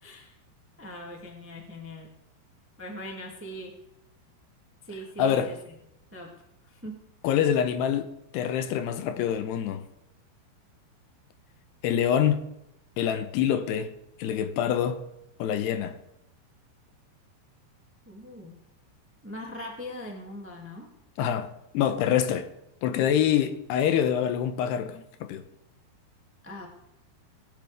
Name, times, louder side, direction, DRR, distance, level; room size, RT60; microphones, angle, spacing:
voice 1, 0.0-0.3 0.8-2.1 2.8-3.7 4.8-5.5 6.1-6.3 6.7-7.0 18.0-18.6 19.2-20.9 26.4-26.7, equal, 5° right, 0.9 m, -40 dB
voice 2, 5.2-5.5 7.2-9.8 11.8-12.4 13.0-13.9 14.2-15.0 15.4-16.0 21.2-21.5 21.7-22.5 22.8-25.4, left 9 dB, 80° left, 2.8 m, -25 dB
20.5 x 10.5 x 3.5 m
omnidirectional pair, 4.9 m